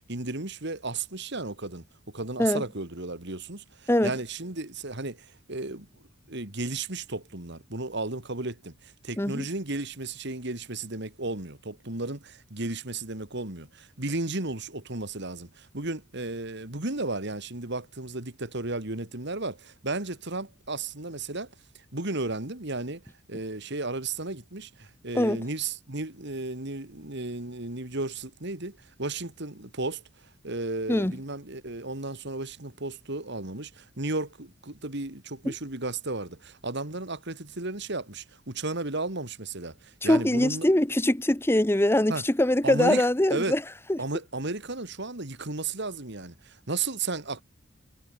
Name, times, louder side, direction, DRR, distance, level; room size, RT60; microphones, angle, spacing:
voice 1, 0.1-1.8 2.1-5.9 6.3-21.5 21.9-23.0 23.3-40.7 42.1-42.2 42.6-43.0 43.3-43.6 44.0-47.4, right 2 dB, 55° right, 2.8 m, -34 dB
voice 2, 40.0-43.6 43.9-44.0, left 1 dB, 10° left, 0.9 m, -23 dB
head